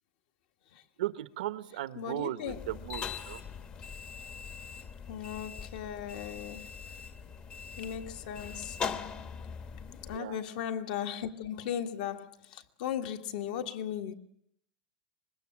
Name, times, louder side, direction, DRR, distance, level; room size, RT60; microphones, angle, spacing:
voice 1, 1.0-3.4 10.1-10.4, right 14 dB, 85° right, 1.0 m, -36 dB
voice 2, 2.0-2.6 5.1-6.7 7.8-8.8 10.1-14.1, left 9 dB, 65° left, 1.7 m, -37 dB
sound 1, 2.5-10.2, left 6 dB, 25° left, 0.9 m, -41 dB
25.0 x 21.0 x 7.3 m
supercardioid pair, 155°, 5 cm